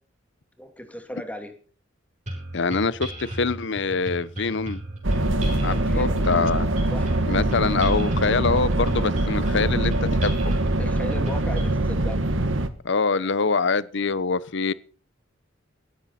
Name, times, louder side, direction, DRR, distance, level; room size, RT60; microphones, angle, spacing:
voice 1, 0.6-1.5 5.8-6.2 6.9-7.2 10.8-12.2 13.2-13.3, equal, 10° left, 2.7 m, -36 dB
sound 1, 2.3-11.9, right 1 dB, 40° right, 7.4 m, -36 dB
voice 2, 2.5-4.8 5.6-6.7 7.3-10.4 12.8-14.7, left 4 dB, 65° left, 0.8 m, -24 dB
sound 2, 5.0-12.7, right 1 dB, 75° right, 1.5 m, -23 dB
17.5 x 13.5 x 4.3 m
head